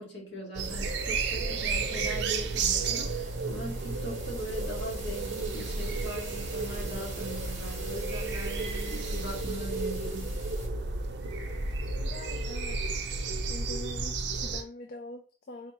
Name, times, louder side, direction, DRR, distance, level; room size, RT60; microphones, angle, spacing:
voice 1, 0.0-10.4, equal, 65° left, -2 dB, 1.6 m, -40 dB
sound 1, 0.5-14.6, right 3 dB, 65° right, 0.5 m, -32 dB
sound 2, 0.6-10.7, right 3 dB, 40° right, 1.5 m, -46 dB
voice 2, 12.0-13.1 13.5-15.7, left 1 dB, 50° left, 4 dB, 0.4 m, -44 dB
4.2 x 2.8 x 2.9 m, 0.38 s
head